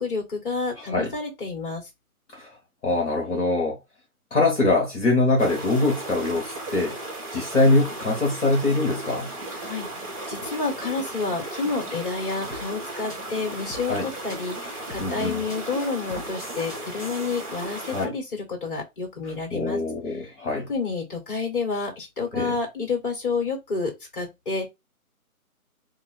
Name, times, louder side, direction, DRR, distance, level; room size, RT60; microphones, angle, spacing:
voice 1, 0.0-1.8 9.6-19.8 20.7-24.7, left 4 dB, 35° left, 1.8 m, -29 dB
voice 2, 0.8-1.1 2.3-2.5 2.8-3.8 4.3-7.0 7.3-9.3 13.8-14.1 15.0-15.4 17.9-18.1 19.2-20.7 22.3-22.6, left 2 dB, 50° left, 1.4 m, -23 dB
sound 1, 5.4-18.1, right 2 dB, 25° right, 1.3 m, -36 dB
sound 2, 12.5-17.5, left 2 dB, 15° left, 0.9 m, -43 dB
2.9 x 2.6 x 4.2 m
figure-of-eight pair, 150°, 44 cm